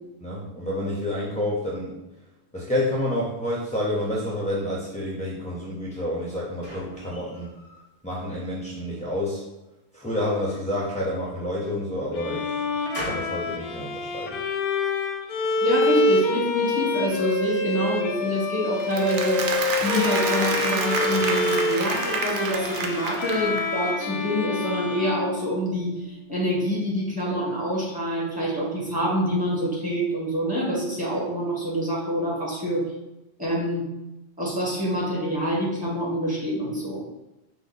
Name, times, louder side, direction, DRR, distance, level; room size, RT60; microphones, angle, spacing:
voice 1, 0.2-2.0 2.5-7.5 8.0-9.4 9.9-12.7 13.0-14.4, left 1 dB, 10° left, -5 dB, 0.4 m, -29 dB
sound 1, 5.9-7.9 8.3-9.1 10.0-11.5 12.1-13.4, equal, 35° right, 1.7 m, -41 dB
Bowed string instrument, 12.1-26.0, left 3 dB, 60° left, 0.7 m, -27 dB
voice 2, 15.6-19.4 19.8-32.9 33.4-33.9 34.4-37.0, equal, 5° right, -6 dB, 1.2 m, -26 dB
Applause, 18.8-23.8, right 4 dB, 85° right, 0.9 m, -29 dB
5.0 x 2.1 x 3.9 m, 0.98 s
omnidirectional pair, 1.2 m